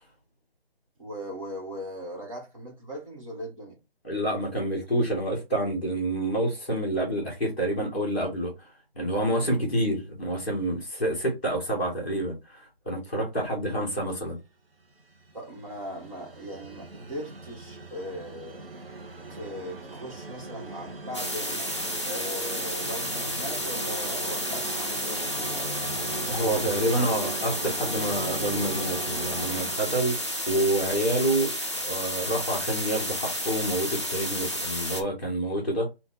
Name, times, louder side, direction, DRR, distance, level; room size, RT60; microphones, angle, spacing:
voice 1, 1.0-3.8 15.3-18.7 19.3-21.7 22.0-25.7, equal, 35° right, 1.7 m, -39 dB
voice 2, 4.0-8.7 8.9-14.4 26.3-30.1 30.5-31.5 31.8-35.9, right 1 dB, 10° left, 1.4 m, -28 dB
sound 1, 14.8-30.9, right 3 dB, 70° right, 1.2 m, -39 dB
sound 2, 21.1-35.0, equal, 30° left, 0.5 m, -31 dB
3.6 x 2.8 x 4.3 m
figure-of-eight pair, 180°, 30 cm